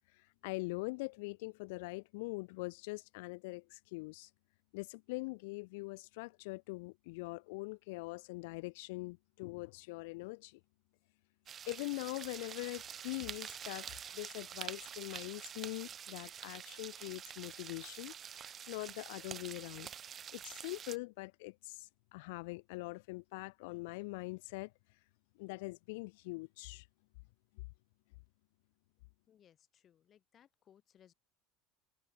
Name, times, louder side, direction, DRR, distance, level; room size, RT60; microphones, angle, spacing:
voice 1, 0.1-4.3 4.7-10.6 11.7-19.9 20.3-25.0 25.4-26.9, left 25 dB, 80° left, 0.7 m, -43 dB
sound 1, 11.5-21.0, right 8 dB, 30° right, 0.8 m, -47 dB
voice 2, 29.3-31.1, left 9 dB, 30° left, 3.4 m, -66 dB
cardioid pair, 150°, 0 cm